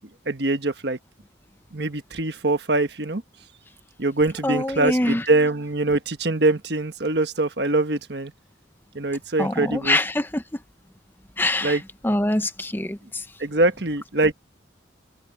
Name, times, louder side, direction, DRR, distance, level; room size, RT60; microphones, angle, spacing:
voice 1, 0.3-1.0 1.7-3.2 4.0-8.3 8.9-10.0 11.6-11.8 13.4-14.3, right 2 dB, 55° right, 1.4 m, -23 dB
voice 2, 4.4-5.2 9.4-10.4 11.4-11.8 12.0-13.2, left 1 dB, 10° left, 0.7 m, -24 dB
head